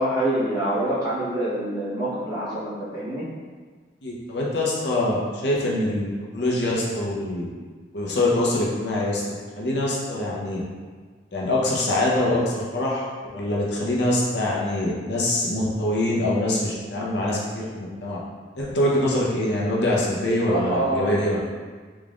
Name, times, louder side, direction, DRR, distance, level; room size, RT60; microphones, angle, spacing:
voice 1, 0.0-3.3 20.5-21.2, right 1 dB, 20° right, -10 dB, 1.0 m, -26 dB
voice 2, 4.0-7.5 7.9-9.2 9.6-10.6 11.3-13.0 13.3-18.2 18.6-21.4, left 1 dB, 70° left, -5 dB, 0.7 m, -24 dB
3.6 x 3.5 x 2.4 m, 1.5 s
head